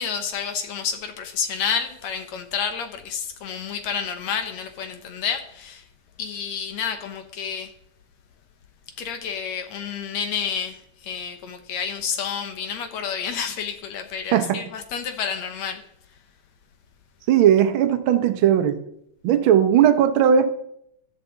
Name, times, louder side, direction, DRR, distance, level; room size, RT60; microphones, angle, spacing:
voice 1, 0.0-5.8 6.2-7.7 9.0-15.8, left 7 dB, 70° left, 2.2 m, -29 dB
voice 2, 14.3-14.6 17.3-18.8 19.2-20.5, right 9 dB, 60° right, 1.4 m, -17 dB
15.5 x 11.0 x 4.0 m
omnidirectional pair, 3.4 m